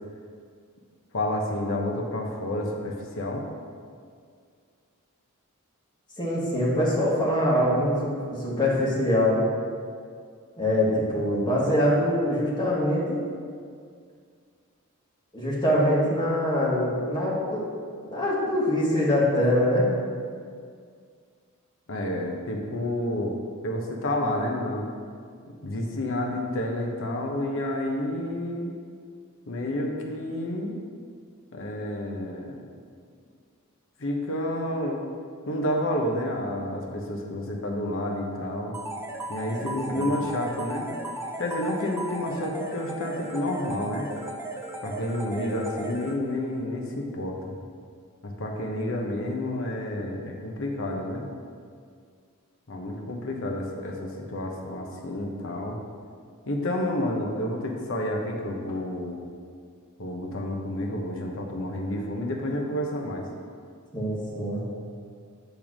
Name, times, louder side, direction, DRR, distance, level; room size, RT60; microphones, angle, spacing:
voice 1, 1.1-3.5 21.9-23.3 23.6-24.9 25.5-28.7 29.5-30.8 31.5-32.6 34.0-35.0 35.5-38.8 39.3-40.9 41.4-44.1 44.8-47.5 48.2-51.2 52.7-55.8 56.5-59.2 60.0-63.3, left 1 dB, 65° left, 1 dB, 1.0 m, -30 dB
voice 2, 6.2-9.4 10.6-13.2 15.3-17.6 18.0-19.9 39.7-40.1 63.9-64.6, left 1 dB, 20° left, -7 dB, 1.8 m, -24 dB
sound 1, 38.7-46.5, right 1 dB, 10° right, 0.6 m, -36 dB
8.9 x 3.5 x 6.1 m, 2.1 s
head